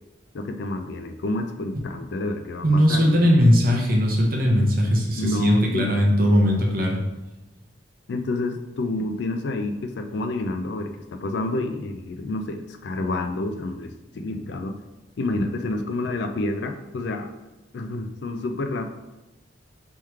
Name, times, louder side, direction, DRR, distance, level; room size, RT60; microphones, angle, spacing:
voice 1, 0.3-3.1 5.2-5.9 8.1-14.8 15.2-17.3 17.7-18.8, left 2 dB, 60° left, 7 dB, 0.4 m, -29 dB
voice 2, 2.6-7.0, equal, 50° right, -1 dB, 0.8 m, -19 dB
3.5 x 3.1 x 4.5 m, 1.0 s
head